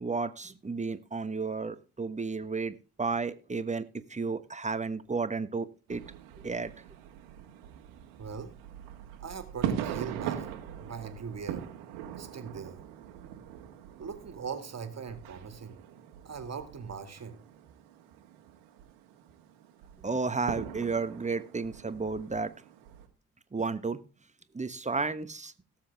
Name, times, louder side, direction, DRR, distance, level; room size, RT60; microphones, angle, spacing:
voice 1, 0.0-6.0 6.4-6.7 20.0-22.5 23.5-24.0 24.5-25.5, right 4 dB, 15° right, 13 dB, 1.2 m, -32 dB
sound 1, 5.9-23.1, right 10 dB, 75° right, 1.8 m, -41 dB
voice 2, 8.2-8.5 9.2-10.5 10.8-11.7 12.1-12.8 14.0-15.8 16.2-17.4, right 6 dB, 35° right, 9 dB, 2.4 m, -40 dB
18.0 x 7.6 x 3.5 m, 0.33 s
hypercardioid pair, 50°, 43 cm